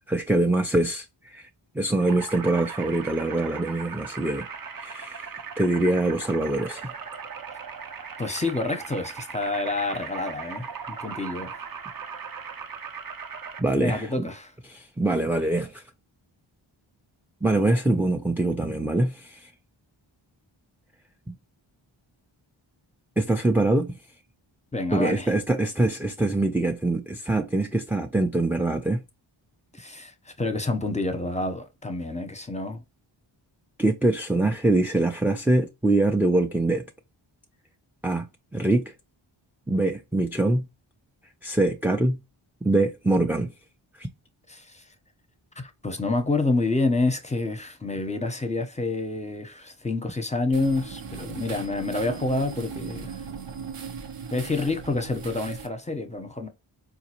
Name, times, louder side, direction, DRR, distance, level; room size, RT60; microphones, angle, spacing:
voice 1, 0.1-1.5 1.7-4.5 4.8-6.9 13.6-14.3 14.7-15.8 17.4-19.5 21.3-21.4 23.2-23.9 24.9-29.0 33.8-36.8 38.0-38.3 38.5-38.9 39.7-40.7 41.4-42.2 42.6-43.5 44.0-44.1, right 2 dB, 5° right, 0.3 m, -24 dB
sound 1, 2.0-13.6, right 6 dB, 45° right, 0.7 m, -38 dB
voice 2, 8.2-11.5 13.8-14.5 24.7-25.3 29.7-32.8 44.5-44.8 45.6-53.2 54.3-56.5, left 2 dB, 15° left, 0.7 m, -28 dB
sound 2, 50.5-55.7, right 6 dB, 75° right, 0.8 m, -38 dB
3.9 x 2.4 x 2.9 m
cardioid pair, 40°, 50 cm